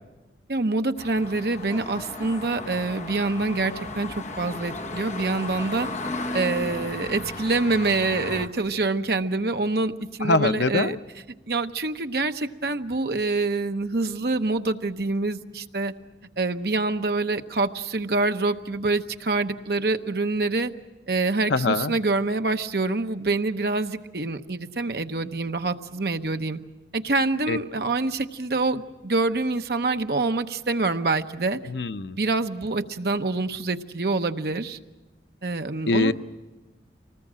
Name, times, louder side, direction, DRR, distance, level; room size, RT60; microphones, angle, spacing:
voice 1, 0.5-5.9 6.3-9.9 10.2-11.0 11.5-15.9 16.4-20.7 21.1-26.6 26.9-31.6 32.2-34.8 35.4-36.1, right 3 dB, 60° right, 8 dB, 0.9 m, -26 dB
sound 1, 1.0-8.5, left 3 dB, 40° left, 1.0 m, -36 dB
sound 2, 1.7-6.9, equal, 20° left, 1.2 m, -39 dB
voice 2, 10.2-11.0 21.5-21.9 27.5-27.6 31.7-32.2 35.9-36.1, left 3 dB, 80° left, 11 dB, 0.7 m, -23 dB
25.0 x 19.5 x 7.5 m, 1.1 s
head